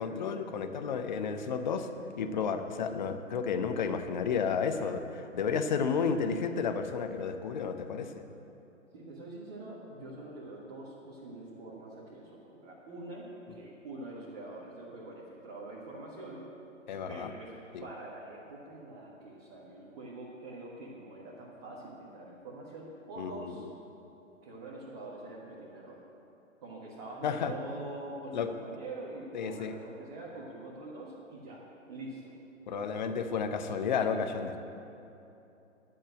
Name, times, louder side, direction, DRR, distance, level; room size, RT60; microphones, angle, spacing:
voice 1, 0.0-1.9 2.1-8.1 16.9-17.3 17.7-17.8 23.2-23.7 27.2-27.5 28.3-28.5 29.3-29.7 32.7-34.6, left 6 dB, 35° left, 7 dB, 0.7 m, -32 dB
voice 2, 8.9-16.4 17.1-17.5 17.8-23.7 24.4-26.0 26.6-32.3, right 2 dB, 30° right, -6 dB, 1.7 m, -45 dB
11.0 x 6.7 x 8.8 m, 2.9 s
figure-of-eight pair, 130°, 39 cm